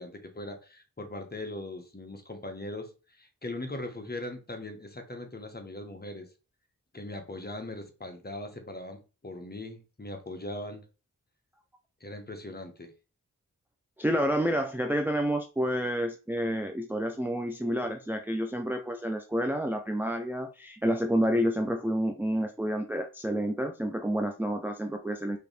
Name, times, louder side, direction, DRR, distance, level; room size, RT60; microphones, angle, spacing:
voice 1, 0.0-2.9 3.2-6.3 6.9-10.8 12.0-12.9, left 1 dB, 25° left, 1.2 m, -40 dB
voice 2, 14.0-25.4, equal, 5° right, 0.5 m, -29 dB
4.9 x 3.0 x 3.3 m
cardioid pair, 50°, 37 cm